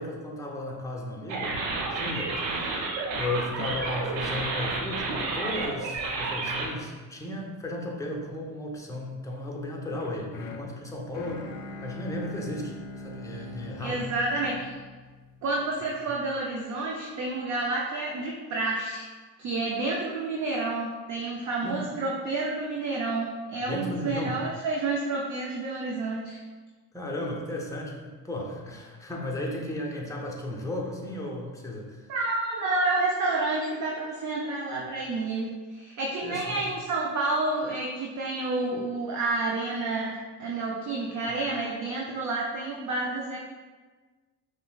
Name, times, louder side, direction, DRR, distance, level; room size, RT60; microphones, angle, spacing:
voice 1, 0.0-11.5 11.8-14.0 21.6-21.9 23.7-24.4 26.9-32.1 36.2-36.6, left 1 dB, 5° left, -2 dB, 0.6 m, -35 dB
sound 1, 1.3-6.7, right 3 dB, 90° right, 0.6 m, -31 dB
sound 2, 10.0-16.1, left 2 dB, 80° left, 0.6 m, -42 dB
voice 2, 13.8-14.7 15.4-19.1 19.4-26.4 32.1-43.4, right 2 dB, 35° right, -2 dB, 0.5 m, -29 dB
5.2 x 2.1 x 2.3 m, 1.4 s
hypercardioid pair, 60°, 49 cm